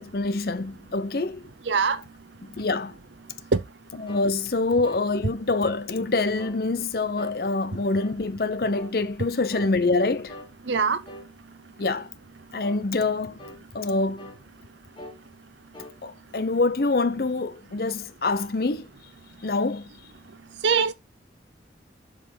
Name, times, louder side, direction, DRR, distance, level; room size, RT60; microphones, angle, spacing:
voice 1, 0.0-1.5 2.5-3.0 4.0-10.4 11.8-12.1 12.5-13.4 13.7-14.3 16.0-18.9 19.4-19.9, left 3 dB, 55° left, 0.7 m, -25 dB
voice 2, 1.7-2.0 3.5-3.6 10.7-11.0 20.6-20.9, right 5 dB, 85° right, 0.7 m, -21 dB
sound 1, 4.1-4.3 4.8-5.1 5.6-5.8 6.4-6.6 7.2-7.4 7.9-8.2 8.7-9.0 9.5-9.7 10.3-10.5 11.1-11.3 11.8-12.1 12.6-12.9 13.4-13.6 14.2-14.4 15.0-15.2 15.7-16.0, equal, 25° left, 1.9 m, -43 dB
7.5 x 4.9 x 3.8 m
head